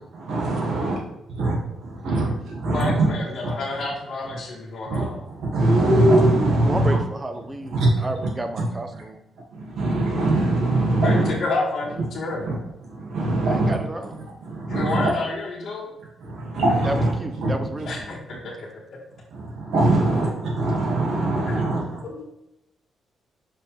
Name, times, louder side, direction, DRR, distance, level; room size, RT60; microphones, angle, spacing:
voice 1, 0.1-1.0 1.3-3.1 3.4-3.5 4.8-7.0 7.7-8.1 8.6-8.7 9.5-11.3 12.5-12.6 12.9-13.7 14.4-15.1 16.2-17.1 17.4-17.5 19.3-22.0, right 2 dB, 75° right, -3 dB, 2.0 m, -22 dB
voice 2, 2.6-5.2 11.0-12.5 14.7-15.9 17.9-18.2 18.4-18.5 21.2-21.5 22.0-22.2, left 3 dB, 50° left, -7 dB, 1.4 m, -29 dB
voice 3, 6.6-9.2 13.5-14.2 16.8-18.2, right 1 dB, 20° right, 7 dB, 0.7 m, -31 dB
5.4 x 5.4 x 3.4 m, 0.87 s
cardioid pair, 110°, 0 cm